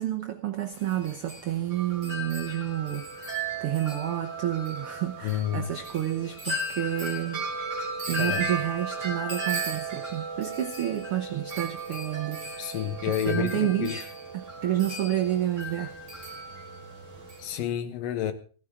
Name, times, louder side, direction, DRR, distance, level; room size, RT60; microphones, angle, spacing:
voice 1, 0.0-7.4 8.1-12.7 13.3-16.0 16.3-16.4, right 12 dB, 85° right, 6 dB, 1.2 m, -30 dB
Wind chime, 0.7-17.6, right 2 dB, 20° right, 3.1 m, -35 dB
voice 2, 5.2-5.7 8.2-8.4 12.6-14.0 17.4-18.3, left 10 dB, 80° left, 10 dB, 2.8 m, -29 dB
17.0 x 15.5 x 3.7 m, 0.40 s
omnidirectional pair, 3.9 m